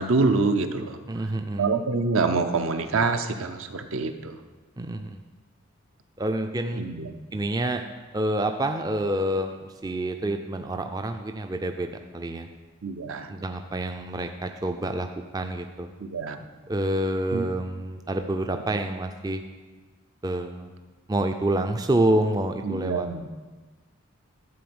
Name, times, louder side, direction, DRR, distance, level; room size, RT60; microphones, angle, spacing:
voice 1, 0.0-1.0 1.6-4.4 6.8-7.1 12.8-13.3 16.0-16.4 17.3-17.5 22.6-23.3, right 3 dB, 70° right, 8 dB, 0.7 m, -26 dB
voice 2, 1.1-1.7 4.8-5.2 6.2-6.9 7.3-7.8 8.1-12.5 13.3-15.9 16.7-19.4 20.2-20.7 21.1-23.1, right 1 dB, 15° right, 6 dB, 0.4 m, -27 dB
12.5 x 4.3 x 7.8 m, 1.3 s
head